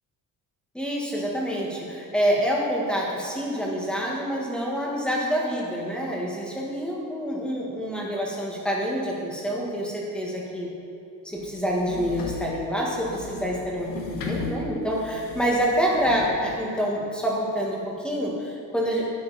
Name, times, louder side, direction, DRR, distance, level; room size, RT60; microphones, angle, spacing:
voice 1, 0.7-10.7 11.2-19.1, equal, 5° left, -3 dB, 1.8 m, -27 dB
sound 1, 11.4-16.4, left 4 dB, 80° left, 1.5 m, -37 dB
11.5 x 9.6 x 4.2 m, 2.6 s
cardioid pair, 165°, 33 cm